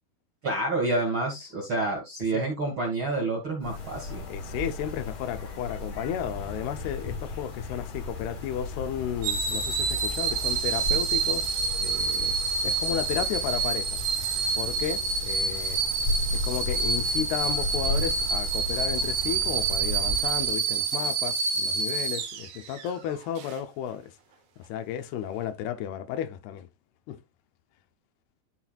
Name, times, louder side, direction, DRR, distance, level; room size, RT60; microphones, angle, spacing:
voice 1, 0.4-4.2, right 2 dB, 35° right, 2.6 m, -28 dB
sound 1, 3.6-20.6, left 2 dB, 40° left, 3.7 m, -35 dB
voice 2, 4.3-11.5 11.8-12.4 12.6-14.1 14.6-15.8 16.3-24.1 24.7-26.7 27.1-27.2, left 10 dB, 85° left, 2.9 m, -33 dB
sound 2, 9.2-22.9 23.4-23.6, right 5 dB, 70° right, 3.6 m, -28 dB
13.0 x 6.2 x 2.4 m
omnidirectional pair, 4.5 m